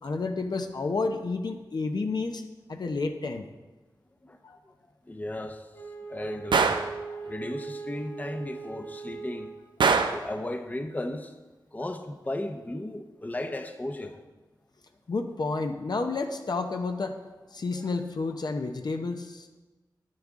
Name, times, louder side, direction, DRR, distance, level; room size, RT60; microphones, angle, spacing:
voice 1, 0.0-2.4 2.7-3.5 4.4-4.6 15.1-17.2 17.5-19.5, left 3 dB, 60° left, 5 dB, 0.7 m, -30 dB
voice 2, 5.1-6.8 7.2-9.5 10.1-11.3 11.7-14.2 17.7-17.8, left 1 dB, 20° left, 7 dB, 0.7 m, -35 dB
Wind instrument woodwind instrument, 5.7-9.9, right 4 dB, 35° left, 1.8 m, -40 dB
Gunshot gunfire, 6.5-6.9 9.8-10.3, right 5 dB, 85° right, 0.5 m, -22 dB
9.8 x 8.7 x 3.6 m, 1.2 s
wide cardioid pair, 70°, 8 cm